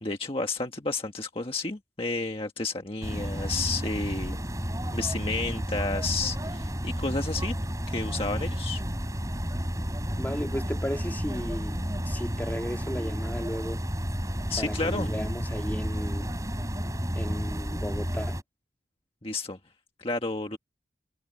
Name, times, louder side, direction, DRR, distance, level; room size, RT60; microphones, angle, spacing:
voice 1, 0.0-4.4 4.9-7.5 7.9-8.8 14.5-15.1 19.2-19.6 20.0-20.6, left 3 dB, 30° left, 1.5 m, -31 dB
sound 1, 3.0-18.4, equal, 20° right, 6.7 m, -31 dB
voice 2, 10.2-11.8 12.0-13.8 14.6-16.3 17.1-18.4, equal, 10° left, 2.7 m, -34 dB
head